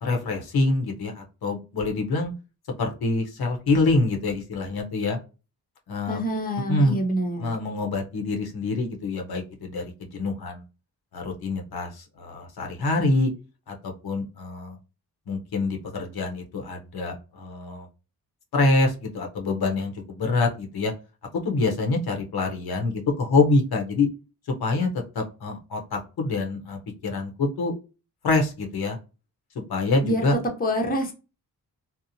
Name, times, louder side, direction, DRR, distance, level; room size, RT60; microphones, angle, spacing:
voice 1, 0.0-2.3 2.8-5.2 5.9-6.2 6.7-7.0 7.4-10.6 11.1-13.3 13.7-14.8 15.3-17.9 18.5-20.9 21.3-24.1 24.5-24.9 25.1-27.7 28.2-29.0 29.7-30.4, left 3 dB, 70° left, 3 dB, 0.8 m, -25 dB
voice 2, 6.1-7.5 30.0-31.1, equal, 25° left, 3 dB, 0.7 m, -26 dB
2.8 x 2.0 x 2.6 m, 0.31 s
cardioid pair, 80°, 38 cm